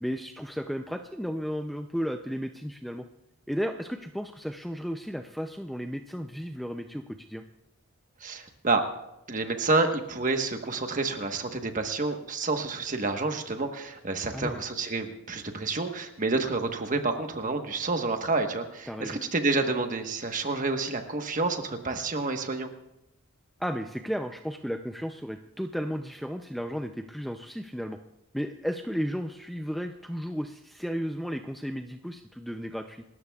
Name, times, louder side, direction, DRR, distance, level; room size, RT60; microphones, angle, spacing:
voice 1, 0.0-3.1 3.5-7.4 14.3-14.6 18.9-19.2 23.6-28.0 28.3-33.0, equal, ahead, 5 dB, 0.4 m, -34 dB
voice 2, 8.2-8.8 9.3-22.7, right 3 dB, 35° right, 5 dB, 1.2 m, -29 dB
28.0 x 13.5 x 2.4 m, 0.87 s
head